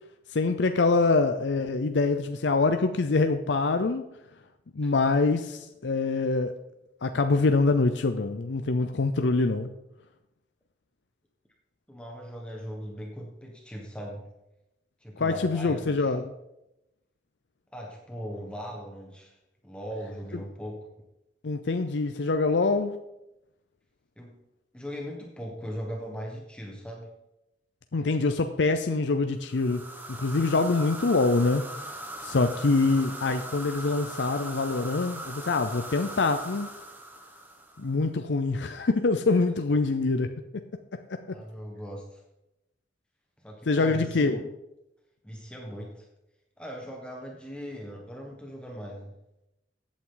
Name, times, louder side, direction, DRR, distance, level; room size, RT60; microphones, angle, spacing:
voice 1, 0.3-4.0 4.7-6.6 7.0-9.7 15.2-16.3 21.4-23.0 27.9-29.8 30.1-31.6 32.2-36.7 37.8-40.3 41.1-41.2 43.7-44.4, left 3 dB, 70° left, 8 dB, 0.6 m, -25 dB
voice 2, 11.9-14.3 15.0-16.1 17.7-19.3 19.6-20.9 24.2-24.4 24.7-27.1 32.5-32.6 41.3-42.2 43.4-44.4 45.2-46.1 46.6-49.1, equal, 5° left, 0 dB, 1.4 m, -39 dB
sound 1, 29.5-38.0, right 1 dB, 10° right, 1.2 m, -40 dB
15.0 x 8.6 x 3.9 m, 0.90 s
head